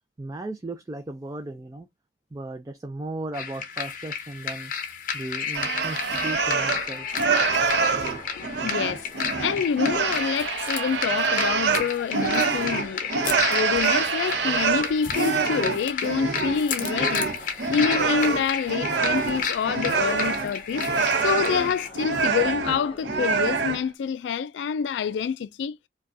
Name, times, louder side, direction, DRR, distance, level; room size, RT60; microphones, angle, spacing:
voice 1, 0.2-1.9 2.3-4.7 5.1-7.2, right 2 dB, 20° right, 0.3 m, -36 dB
sound 1, 3.3-21.9, left 6 dB, 50° left, 0.8 m, -32 dB
sound 2, 5.5-6.9 7.1-23.8, right 5 dB, 75° right, 0.6 m, -25 dB
sound 3, 6.4-23.0, left 3 dB, 30° left, 1.2 m, -47 dB
voice 2, 8.4-9.1 9.4-13.1 13.5-17.3 17.7-20.8 21.2-25.8, left 6 dB, 80° left, 0.3 m, -27 dB
4.7 x 2.2 x 2.6 m
head